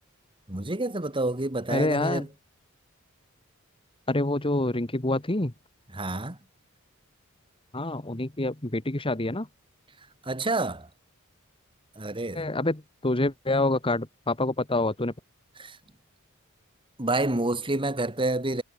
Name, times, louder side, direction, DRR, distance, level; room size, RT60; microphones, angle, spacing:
voice 1, 0.5-2.3 5.9-6.4 10.2-10.9 12.0-12.5 15.6-15.8 17.0-18.6, right 2 dB, 25° right, 2.3 m, -28 dB
voice 2, 1.7-2.3 4.1-5.5 7.7-9.5 12.3-15.1, left 2 dB, 25° left, 1.7 m, -27 dB
head